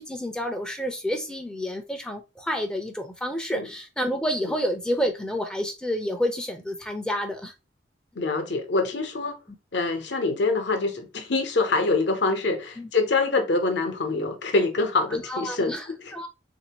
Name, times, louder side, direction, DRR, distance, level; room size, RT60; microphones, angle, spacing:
voice 1, 0.0-7.5 12.8-12.9 15.1-16.3, equal, 5° left, 0.5 m, -29 dB
voice 2, 8.2-9.4 9.7-16.1, left 3 dB, 60° left, 0.8 m, -25 dB
3.7 x 2.6 x 2.9 m
head